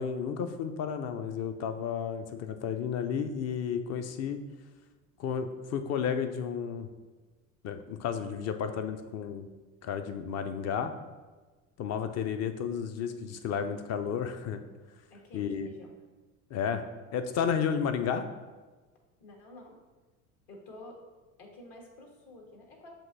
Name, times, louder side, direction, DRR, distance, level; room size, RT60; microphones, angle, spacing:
voice 1, 0.0-4.4 5.2-6.9 7.6-9.5 9.8-10.9 11.8-14.6 15.3-15.7 16.5-16.8 17.1-18.2, left 7 dB, 40° left, 8 dB, 0.5 m, -32 dB
voice 2, 15.1-15.9 19.2-19.8 20.5-21.0 21.4-22.9, left 1 dB, 55° left, -1 dB, 1.4 m, -50 dB
7.3 x 2.6 x 2.6 m, 1.3 s
hypercardioid pair, 75°, 43 cm